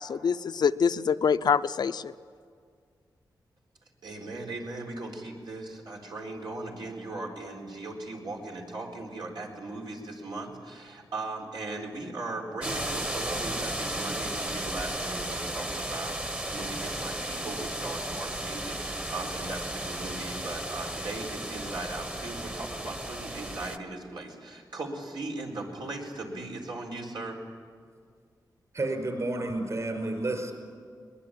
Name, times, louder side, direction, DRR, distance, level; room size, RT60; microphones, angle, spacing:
voice 1, 0.0-2.1, left 6 dB, 70° left, 11 dB, 0.6 m, -25 dB
voice 2, 4.0-27.4, right 2 dB, 85° right, -1 dB, 4.2 m, -38 dB
sound 1, 12.6-23.8, right 1 dB, 15° right, 1.1 m, -34 dB
voice 3, 28.7-30.5, right 2 dB, 45° right, 5 dB, 5.0 m, -30 dB
22.5 x 20.0 x 8.8 m, 2.1 s
wide cardioid pair, 105°, 8 cm